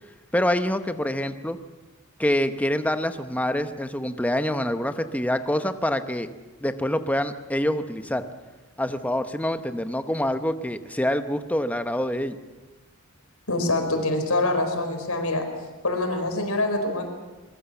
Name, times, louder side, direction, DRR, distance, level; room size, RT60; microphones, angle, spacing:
voice 1, 0.3-1.6 2.2-6.3 6.6-8.3 8.8-12.4, left 1 dB, 5° left, 9 dB, 0.9 m, -26 dB
voice 2, 13.5-15.4 15.8-17.0, left 2 dB, 90° left, 5 dB, 4.4 m, -25 dB
23.0 x 21.0 x 7.2 m, 1.2 s
head